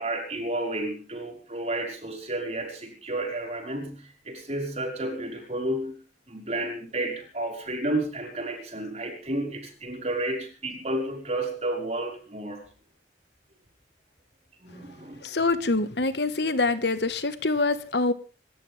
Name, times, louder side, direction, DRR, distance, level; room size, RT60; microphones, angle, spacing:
voice 1, 0.0-12.6 14.6-15.2, right 1 dB, 40° right, 5.2 m, -31 dB
voice 2, 15.2-18.1, left 3 dB, 70° left, 1.6 m, -25 dB
28.0 x 13.5 x 3.6 m
head